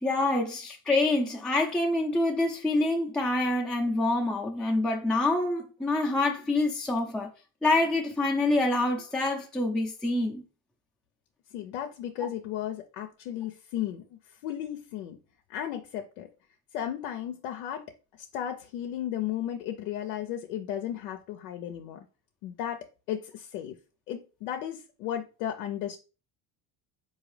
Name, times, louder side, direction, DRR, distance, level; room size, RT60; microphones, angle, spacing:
voice 1, 0.0-7.3 7.6-10.4, left 2 dB, ahead, 0.5 m, -26 dB
voice 2, 11.5-14.0 14.4-15.2 15.5-16.3 16.7-17.8 18.2-22.0 22.4-22.8 23.1-23.8 24.1-26.0, left 10 dB, 90° left, 0.6 m, -34 dB
3.8 x 2.7 x 3.2 m
supercardioid pair, 90°, 42 cm